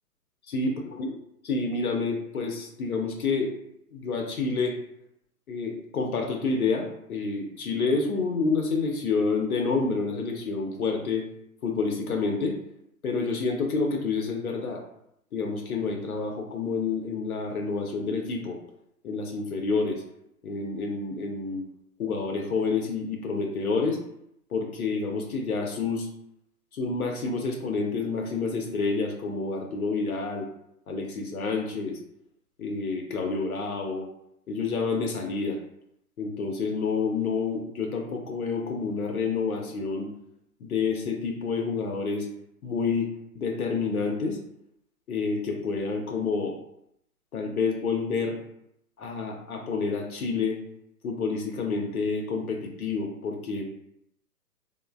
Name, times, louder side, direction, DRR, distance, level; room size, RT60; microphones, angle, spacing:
voice 1, 0.5-1.2 1.4-3.6 3.9-4.8 5.5-11.3 11.6-12.6 13.0-14.8 15.3-18.6 19.0-20.0 20.4-21.7 22.0-24.0 24.5-26.1 26.7-30.5 30.9-32.0 32.6-34.1 34.5-35.6 36.2-40.1 40.6-42.3 42.6-43.1 43.3-44.4 45.1-46.6 47.3-48.4 49.0-50.6 51.0-53.6, left 4 dB, 65° left, 2 dB, 0.6 m, -28 dB
3.0 x 2.0 x 2.2 m, 0.76 s
figure-of-eight pair, 130°, 48 cm